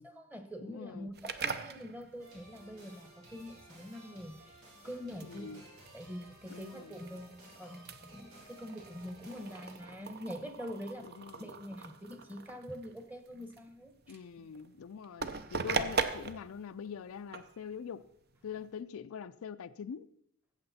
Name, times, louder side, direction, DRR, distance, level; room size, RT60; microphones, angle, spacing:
voice 1, 0.0-5.6 5.9-11.1 11.4-14.5, equal, 10° right, 1.0 m, -45 dB
voice 2, 0.6-1.1 5.2-5.6 6.5-6.9 11.0-11.4 14.1-18.0 18.4-20.1, left 7 dB, 80° left, 0.4 m, -44 dB
sound 1, 1.1-18.8, right 5 dB, 50° right, 0.7 m, -41 dB
sound 2, 2.2-9.7, right 1 dB, 90° right, 3.8 m, -56 dB
14.0 x 7.8 x 4.2 m
head